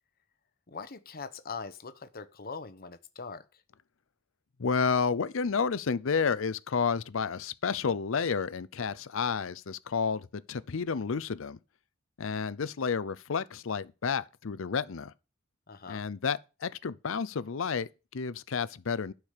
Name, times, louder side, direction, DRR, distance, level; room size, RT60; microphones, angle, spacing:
voice 1, 0.7-3.6 15.7-16.0, left 5 dB, 45° left, 1.0 m, -42 dB
voice 2, 4.6-11.6 12.2-15.1 15.9-19.1, left 5 dB, 70° left, 0.6 m, -31 dB
12.0 x 4.9 x 6.6 m
head